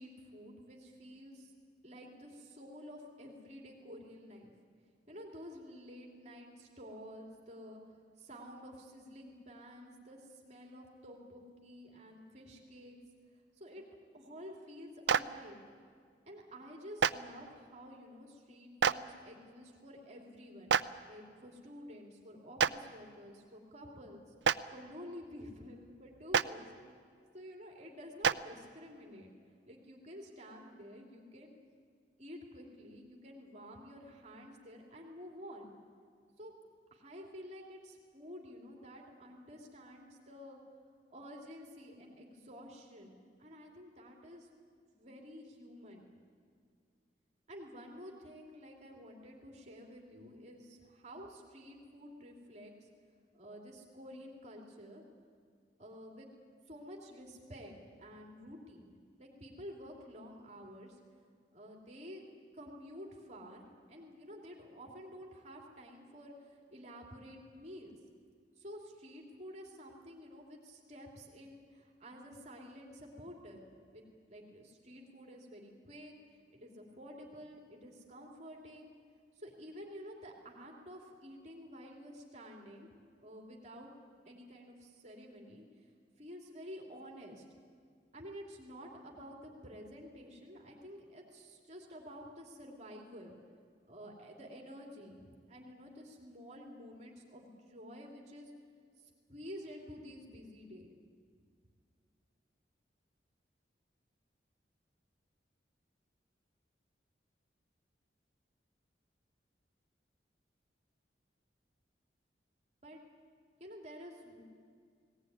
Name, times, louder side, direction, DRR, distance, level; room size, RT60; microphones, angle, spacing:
voice 1, 0.0-1.5 1.8-4.5 5.1-13.0 13.6-13.8 14.1-15.6 16.3-20.7 21.1-24.3 24.7-26.7 27.3-29.3 29.7-31.5 32.2-35.7 36.4-36.5 36.9-40.6 41.1-43.1 43.4-44.5 45.0-46.0 47.5-52.9 53.3-55.0 55.8-56.3 56.7-58.9 59.2-61.0 61.5-62.2 62.5-68.0 68.6-74.0 74.3-76.1 76.5-78.9 79.4-82.9 83.2-83.9 84.2-85.9 86.2-87.4 88.1-93.3 93.9-98.5 99.0-100.9 112.8-113.0 113.6-114.4, equal, 40° right, 0 dB, 2.8 m, -50 dB
Clapping, 15.1-15.2 17.0-17.1 18.8-18.9 20.7-20.8 22.6-22.7 24.4-24.5 26.3-26.4 28.2-28.3, right 7 dB, 90° right, 0.5 m, -25 dB
19.0 x 18.0 x 9.4 m, 2.2 s
head